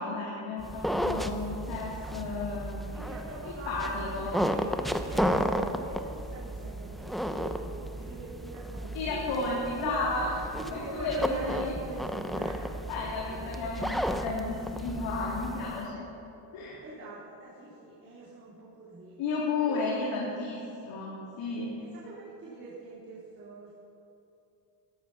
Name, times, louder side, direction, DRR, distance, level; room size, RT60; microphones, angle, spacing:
voice 1, 0.0-2.8 3.4-4.5 8.9-10.3 10.7-11.7 12.9-16.1 16.5-16.8 19.2-21.7, left 3 dB, 70° left, -6 dB, 3.8 m, -33 dB
sound 1, 0.6-15.9, equal, ahead, 0.6 m, -33 dB
voice 2, 2.9-10.0 10.6-12.7 13.3-13.4 16.8-19.2 19.6-19.8 21.8-23.7, right 2 dB, 25° right, -11 dB, 4.3 m, -43 dB
18.0 x 13.5 x 5.8 m, 2.8 s
cardioid pair, 135°, 48 cm